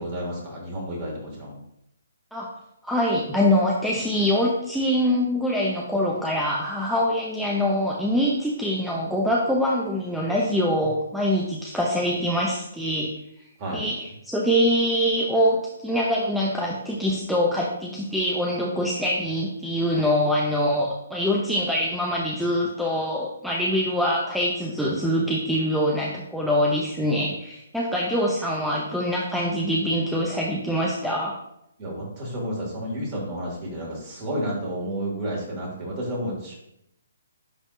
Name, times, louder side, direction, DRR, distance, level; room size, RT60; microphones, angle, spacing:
voice 1, 0.0-1.6 13.6-13.8 31.8-36.5, equal, 30° right, -3 dB, 2.5 m, -31 dB
voice 2, 2.8-13.1 13.7-31.3, equal, ahead, -4 dB, 0.7 m, -24 dB
9.9 x 3.5 x 2.7 m, 0.78 s
figure-of-eight pair, 135°, 0 cm